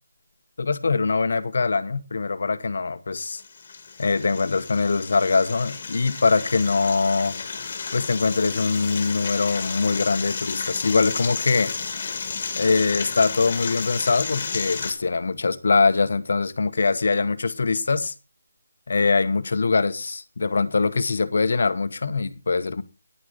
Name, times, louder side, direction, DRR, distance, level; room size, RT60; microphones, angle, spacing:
voice 1, 0.6-3.4 4.0-7.4 7.9-11.7 12.6-18.1 18.9-22.8, left 4 dB, 45° left, 0.9 m, -23 dB
sound 1, 3.3-14.9, left 5 dB, 25° left, 1.7 m, -32 dB
10.0 x 8.6 x 4.9 m
hypercardioid pair, 180°, 0 cm